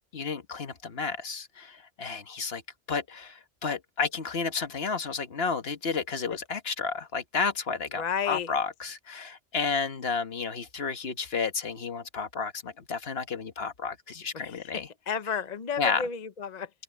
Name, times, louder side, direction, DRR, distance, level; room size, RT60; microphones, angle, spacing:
voice 1, 0.1-2.6 2.9-14.9 15.8-16.0, left 5 dB, 55° left, 1.4 m, -31 dB
voice 2, 8.0-8.5 14.3-16.7, left 7 dB, 40° left, 0.8 m, -32 dB
open air
omnidirectional pair, 1.2 m